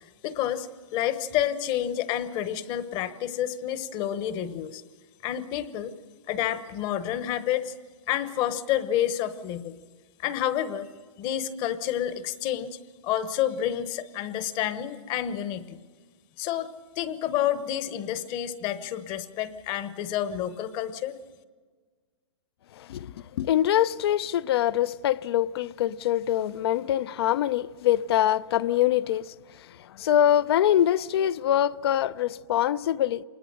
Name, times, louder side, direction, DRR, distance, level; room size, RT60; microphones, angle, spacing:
voice 1, 0.2-4.8 5.2-5.9 6.3-7.7 8.1-9.8 10.2-10.9 11.2-12.8 13.0-15.8 16.4-16.7 17.0-21.1, left 11 dB, 30° left, 1.0 m, -29 dB
voice 2, 22.8-29.3 30.0-33.2, left 11 dB, 55° left, 0.6 m, -24 dB
25.5 x 20.0 x 6.7 m
hypercardioid pair, 150°, 15 cm